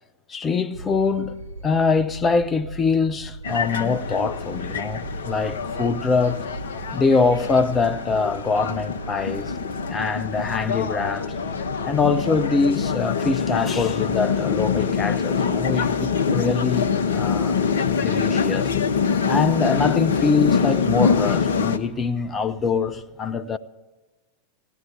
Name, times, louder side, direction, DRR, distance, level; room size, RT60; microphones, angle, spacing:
voice 1, 0.3-6.4 6.9-9.6 9.9-11.3 11.8-17.6 18.0-18.7 19.3-23.6, left 4 dB, 20° left, 0.6 m, -23 dB
sound 1, 0.7-16.4, right 2 dB, 75° right, 0.9 m, -39 dB
sound 2, 3.4-21.8, left 6 dB, 65° left, 0.8 m, -25 dB
sound 3, 3.9-23.0, right 6 dB, 20° right, 2.5 m, -48 dB
16.0 x 10.5 x 6.9 m
figure-of-eight pair, 90°, 0 cm